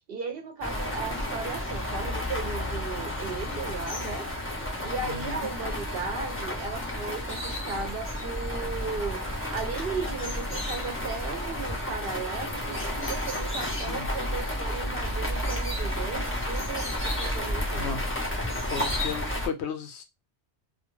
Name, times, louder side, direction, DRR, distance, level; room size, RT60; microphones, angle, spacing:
voice 1, 0.1-4.3 4.8-18.0, right 4 dB, 60° right, 0.7 m, -36 dB
sound 1, 0.6-19.5, left 1 dB, 20° left, 0.4 m, -31 dB
voice 2, 17.7-18.0 18.7-20.0, left 6 dB, 75° left, 0.9 m, -34 dB
2.4 x 2.1 x 3.0 m
omnidirectional pair, 1.2 m